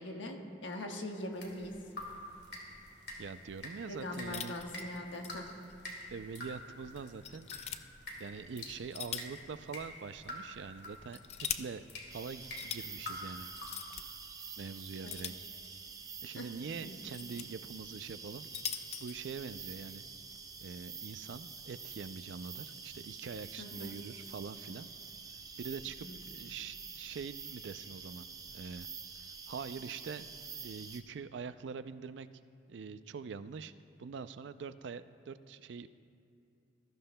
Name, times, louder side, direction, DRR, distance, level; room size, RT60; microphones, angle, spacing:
voice 1, 0.0-1.7 3.8-5.5 16.4-16.5 16.8-17.0 23.6-24.0 26.0-26.2, left 1 dB, 85° left, 2 dB, 1.3 m, -41 dB
sound 1, 1.3-13.8, left 1 dB, 60° left, 2.2 m, -48 dB
voice 2, 3.2-4.5 6.1-7.5 8.2-11.8 12.1-13.5 14.6-15.5 16.2-18.5 19.0-20.0 20.6-24.9 25.6-28.9 29.2-30.3 30.6-32.3 32.7-33.7 34.0-35.9, right 5 dB, 75° right, 13 dB, 0.4 m, -44 dB
sound 2, 4.3-5.4 5.7-5.8 6.4-6.5 7.2-7.8 8.7-9.4 9.7-9.8 10.8-11.6 12.4-12.8 13.6-14.0 15.1-15.9 16.8-17.4 18.3-19.1, left 9 dB, 35° left, 0.4 m, -41 dB
sound 3, 12.1-31.0, right 5 dB, 20° right, 0.6 m, -48 dB
21.0 x 13.5 x 2.2 m, 2.6 s
head